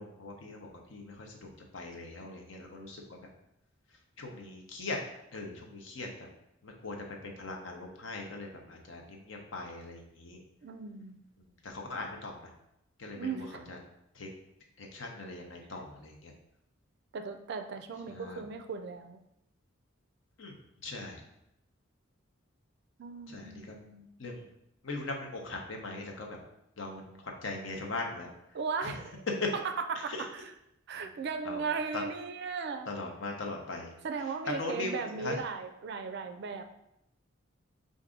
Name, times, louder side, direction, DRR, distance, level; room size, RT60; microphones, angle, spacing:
voice 1, 0.0-3.2 4.2-5.0 5.3-6.1 6.6-10.4 11.4-12.5 13.0-13.8 14.1-14.3 14.8-16.3 18.1-18.4 20.4-20.6 20.8-21.2 23.3-23.7 24.2-24.5 24.8-26.4 26.8-28.3 28.8-28.9 29.4-29.5 30.1-30.2 31.0-31.1 31.4-31.6 31.9-32.0 32.9-33.9 34.5-35.4, left 2 dB, 65° left, 1 dB, 0.8 m, -40 dB
voice 2, 10.6-11.2 13.1-13.6 17.1-19.2 23.0-24.1 28.5-29.2 29.5-30.5 30.9-32.9 34.0-36.7, right 5 dB, 55° right, 7 dB, 0.4 m, -37 dB
4.6 x 2.6 x 3.7 m, 0.82 s
head